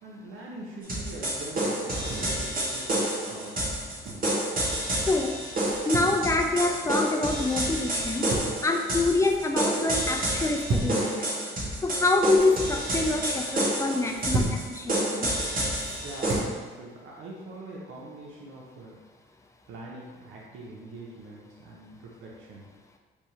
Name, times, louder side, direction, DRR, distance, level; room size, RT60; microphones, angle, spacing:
voice 1, 0.0-3.6 16.0-19.0 19.7-22.7, right 2 dB, 90° right, -3 dB, 0.8 m, -43 dB
sound 1, 0.8-16.4, right 1 dB, 45° right, 1.3 m, -29 dB
sound 2, 1.8-2.4 3.7-4.3 5.6-6.2 7.9-8.6 9.0-9.5 10.3-11.0 12.1-12.6 13.9-14.6 15.8-16.5, right 2 dB, 65° right, 1.0 m, -33 dB
voice 2, 5.1-5.4 5.9-8.3 8.6-11.3 11.8-15.3, left 2 dB, 15° left, 3 dB, 0.5 m, -26 dB
3.5 x 2.7 x 4.4 m, 1.4 s
cardioid pair, 90°, 20 cm